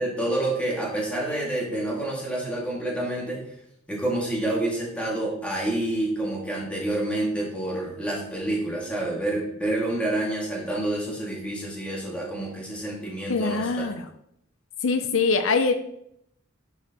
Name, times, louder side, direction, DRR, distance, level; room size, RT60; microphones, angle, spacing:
voice 1, 0.0-3.4 3.9-13.9, right 1 dB, 5° left, -4 dB, 2.1 m, -28 dB
voice 2, 13.3-14.0 14.8-15.7, left 4 dB, 70° left, 8 dB, 0.5 m, -23 dB
10.5 x 4.8 x 3.0 m, 0.76 s
head